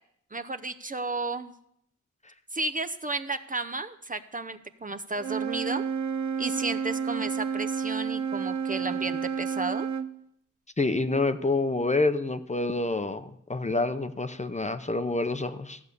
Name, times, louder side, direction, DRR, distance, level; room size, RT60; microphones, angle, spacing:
voice 1, 0.3-1.5 2.5-5.8 6.4-9.9, right 3 dB, 25° right, 8 dB, 0.7 m, -33 dB
Wind instrument woodwind instrument, 5.1-10.1, right 6 dB, 60° right, 0.9 m, -30 dB
voice 2, 10.8-15.8, left 3 dB, 20° left, 10 dB, 0.8 m, -27 dB
15.0 x 8.2 x 6.8 m, 0.76 s
wide cardioid pair, 80°, 31 cm